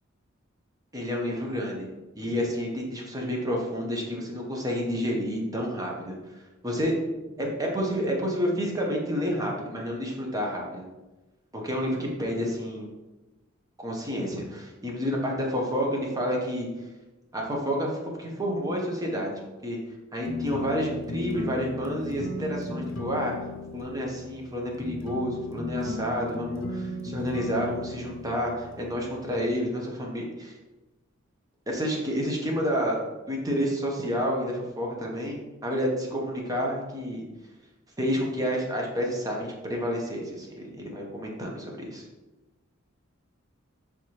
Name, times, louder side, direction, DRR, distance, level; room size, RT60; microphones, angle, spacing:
voice 1, 0.9-1.9 2.2-6.2 6.6-7.1 7.4-10.9 11.5-12.9 13.8-16.7 17.3-17.9 18.2-19.8 20.1-23.3 23.7-30.5 31.7-33.0 33.3-37.2 38.0-42.0, equal, 20° right, -1 dB, 0.8 m, -29 dB
sound 1, 20.2-29.5, left 2 dB, 65° left, 0.6 m, -36 dB
4.7 x 3.5 x 3.0 m, 1.1 s
head